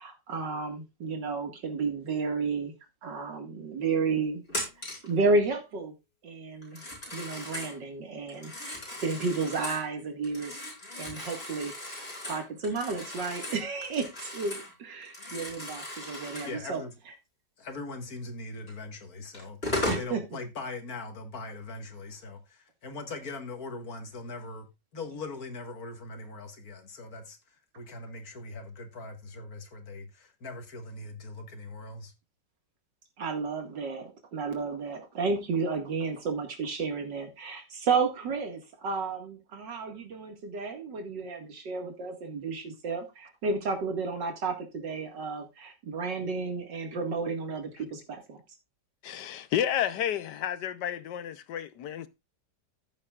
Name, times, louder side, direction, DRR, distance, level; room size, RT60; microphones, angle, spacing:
voice 1, 0.0-2.7 3.0-4.4 4.8-5.9 6.2-6.8 7.1-10.6 10.9-16.8 19.9-20.2 33.2-48.4, right 4 dB, 85° right, 2.6 m, -32 dB
Telephone, 4.5-5.1 6.6-7.8 8.3-9.9 10.2-14.7 15.0-16.6 18.7-18.8 19.3-20.1, left 1 dB, 35° left, 4.9 m, -37 dB
voice 2, 16.4-16.9 17.6-24.7 24.9-32.1, left 3 dB, 55° left, 2.2 m, -41 dB
voice 3, 49.0-52.1, left 10 dB, 75° left, 1.3 m, -31 dB
15.0 x 7.5 x 2.4 m
omnidirectional pair, 1.9 m